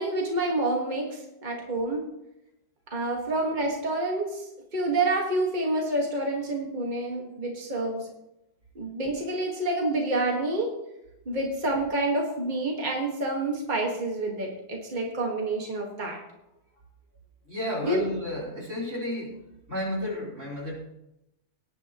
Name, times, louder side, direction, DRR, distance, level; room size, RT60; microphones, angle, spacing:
voice 1, 0.0-2.0 2.9-4.5 4.7-8.1 8.8-10.7 11.3-16.2 17.8-18.0, right 2 dB, 40° right, 0 dB, 1.9 m, -28 dB
voice 2, 17.5-19.4 19.7-20.7, left 1 dB, 85° right, -4 dB, 4.7 m, -32 dB
17.5 x 10.5 x 3.0 m, 0.87 s
omnidirectional pair, 1.2 m